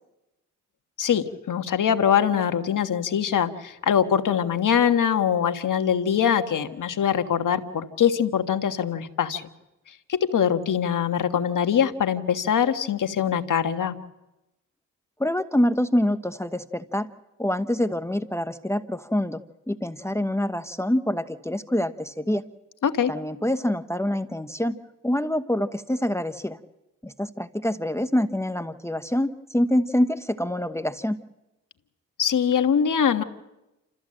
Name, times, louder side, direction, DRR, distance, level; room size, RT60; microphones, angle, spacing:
voice 1, 1.0-9.5 9.9-13.9 22.8-23.1 32.2-33.2, left 8 dB, 65° left, 8 dB, 1.5 m, -23 dB
voice 2, 15.2-17.1 17.4-19.4 19.7-22.4 23.1-24.8 25.0-26.6 27.0-31.2, left 1 dB, 10° left, 11 dB, 1.0 m, -25 dB
28.5 x 14.0 x 7.7 m, 0.98 s
supercardioid pair, 50°, 33 cm